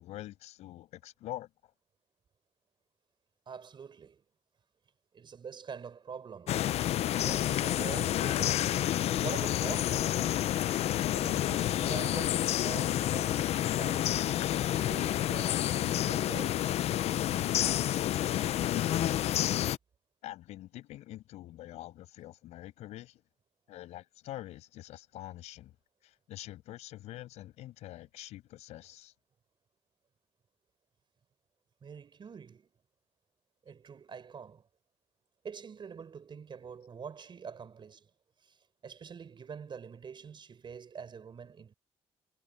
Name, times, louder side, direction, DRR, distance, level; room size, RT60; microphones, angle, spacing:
voice 1, 0.0-1.5 18.6-19.2 20.2-23.2 23.7-25.7 26.0-29.1, left 15 dB, 85° left, 6.8 m, -45 dB
voice 2, 3.5-4.2 5.1-6.6 7.2-8.7 9.2-10.4 11.1-14.2 14.8-16.7 31.8-32.7 33.6-34.7 35.4-38.1 38.4-41.7, right 6 dB, 45° right, 4.8 m, -45 dB
sound 1, 6.5-19.8, left 12 dB, 70° left, 0.6 m, -29 dB
cardioid pair, 90°, 11 cm